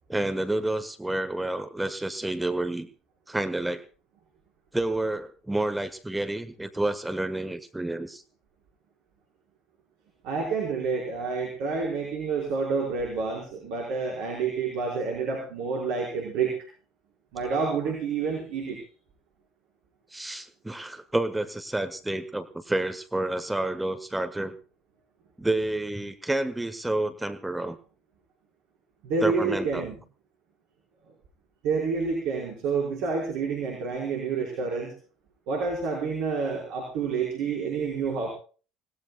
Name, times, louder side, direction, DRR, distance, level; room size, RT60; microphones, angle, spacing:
voice 1, 0.1-2.9 3.3-3.8 4.7-8.2 20.1-24.5 25.4-27.8 29.2-29.9, right 1 dB, 10° right, 11 dB, 1.3 m, -29 dB
voice 2, 10.2-16.7 17.3-18.8 29.0-30.0 31.6-34.9 35.5-38.3, right 5 dB, 60° right, 0 dB, 4.8 m, -28 dB
26.0 x 19.0 x 2.3 m, 0.39 s
figure-of-eight pair, 65°, 0 cm